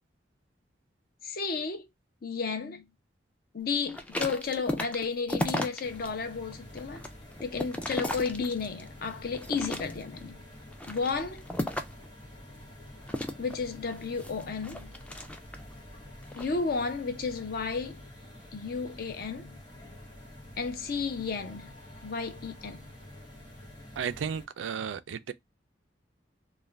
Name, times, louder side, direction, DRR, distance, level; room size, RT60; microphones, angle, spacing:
voice 1, 1.2-1.9 2.2-2.8 3.5-7.0 7.4-10.4 10.9-11.5 13.4-14.9 16.3-18.0 18.5-19.6 20.6-21.7 22.0-22.8, left 5 dB, 55° left, 0.6 m, -33 dB
sound 1, 3.9-6.1 6.5-8.9 9.3-10.2 10.7-12.1 13.1-15.7 16.2-16.5, left 1 dB, 5° left, 0.3 m, -35 dB
sound 2, 5.8-24.5, left 1 dB, 25° left, 1.1 m, -48 dB
voice 2, 24.0-25.3, right 7 dB, 90° right, 0.4 m, -34 dB
2.4 x 2.2 x 3.2 m
head